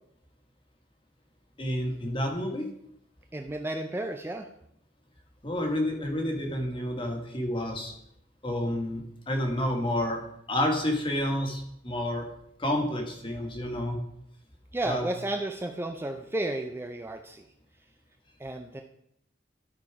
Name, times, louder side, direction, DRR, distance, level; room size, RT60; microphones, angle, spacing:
voice 1, 1.6-2.7 5.4-7.9 8.4-10.2 10.5-12.2 12.6-14.0 14.9-15.0, left 1 dB, 30° left, 3 dB, 1.6 m, -29 dB
voice 2, 3.3-4.5 14.7-17.4 18.4-18.8, right 1 dB, 15° right, 4 dB, 0.5 m, -32 dB
13.0 x 4.5 x 4.7 m, 0.74 s
head